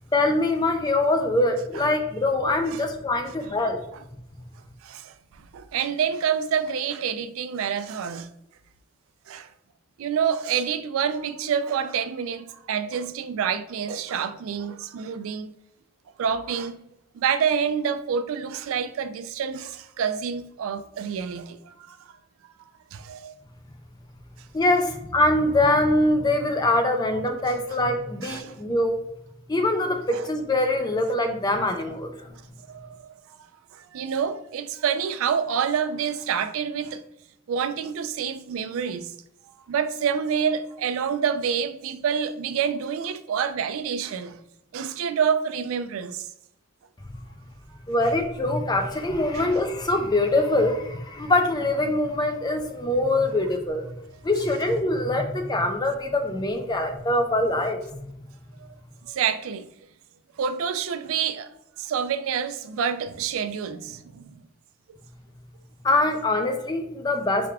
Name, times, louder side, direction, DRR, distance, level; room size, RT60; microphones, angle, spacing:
voice 1, 0.1-3.8 24.5-29.0 29.5-32.1 47.9-53.9 54.2-58.1 65.8-67.5, left 2 dB, 20° left, 0.4 m, -23 dB
voice 2, 4.8-8.3 9.3-9.5 10.0-15.5 16.2-16.8 17.1-22.1 22.9-23.4 27.5-27.8 28.2-28.6 30.1-30.3 32.7-33.2 33.7-37.0 37.5-39.1 39.4-44.4 44.7-46.3 49.3-49.6 58.6-58.8 59.0-59.7 60.4-61.5 61.8-64.4, right 7 dB, 70° right, 0.3 m, -28 dB
4.9 x 3.5 x 2.2 m
head